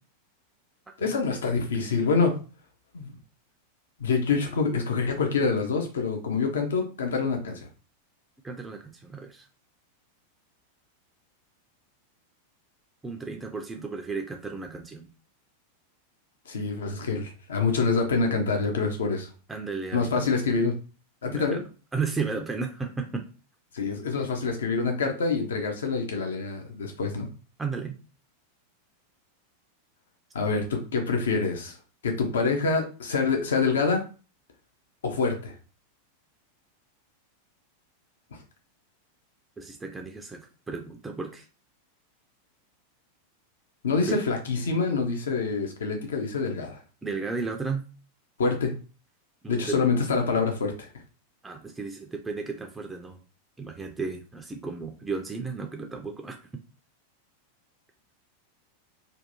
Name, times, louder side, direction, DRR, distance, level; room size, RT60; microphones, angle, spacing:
voice 1, 1.0-2.3 2.9-3.1 4.0-7.7 16.5-19.3 19.9-20.7 21.2-21.6 23.7-27.3 30.3-31.8 32.0-34.0 35.0-35.5 43.8-46.8 48.4-48.7 49.5-50.9, left 4 dB, 65° left, 3 dB, 0.5 m, -26 dB
voice 2, 8.4-9.5 13.0-15.1 19.5-20.3 21.3-21.6 21.9-23.3 27.6-28.0 39.6-41.5 44.0-44.2 47.0-47.8 49.4-49.8 51.4-53.2 53.6-56.5, right 4 dB, 10° right, 3 dB, 0.3 m, -34 dB
2.6 x 2.2 x 2.6 m, 0.36 s
figure-of-eight pair, 90°, 0 cm